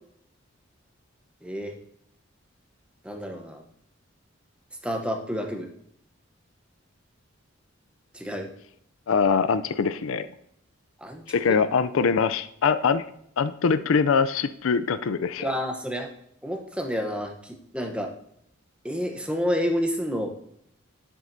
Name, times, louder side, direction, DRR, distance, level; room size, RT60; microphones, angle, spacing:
voice 1, 1.4-1.7 3.0-3.6 4.8-5.7 8.1-8.5 11.0-11.6 15.4-16.1 16.4-18.1 18.8-20.3, equal, 5° right, 4 dB, 0.8 m, -29 dB
voice 2, 9.1-10.3 11.3-13.0 13.4-15.5, left 5 dB, 75° left, 13 dB, 0.4 m, -23 dB
10.0 x 7.4 x 2.7 m, 0.70 s
head